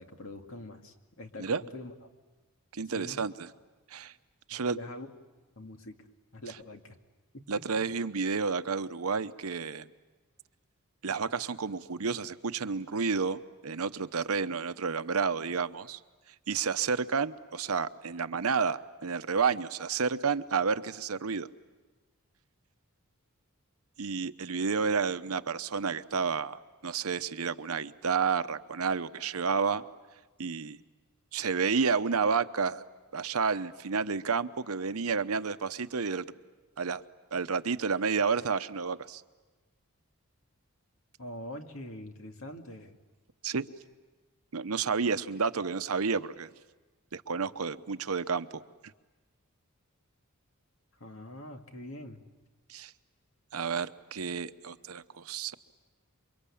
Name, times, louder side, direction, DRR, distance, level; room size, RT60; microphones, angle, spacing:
voice 1, 0.0-1.9 2.9-3.2 4.5-5.1 5.6-6.0 6.3-7.0 7.3-7.4 41.2-43.0 51.0-52.2, left 1 dB, 65° left, 4 dB, 2.2 m, -44 dB
voice 2, 2.7-3.5 3.9-4.1 4.5-4.8 7.5-9.9 11.0-16.0 16.5-21.5 24.0-29.8 30.4-30.8 31.3-32.8 33.1-36.2 36.8-37.0 37.3-39.2 43.4-43.7 44.5-46.5 47.1-48.6 52.7-52.9 53.5-55.5, right 5 dB, 80° right, 12 dB, 0.9 m, -30 dB
28.5 x 24.0 x 8.6 m, 1.2 s
head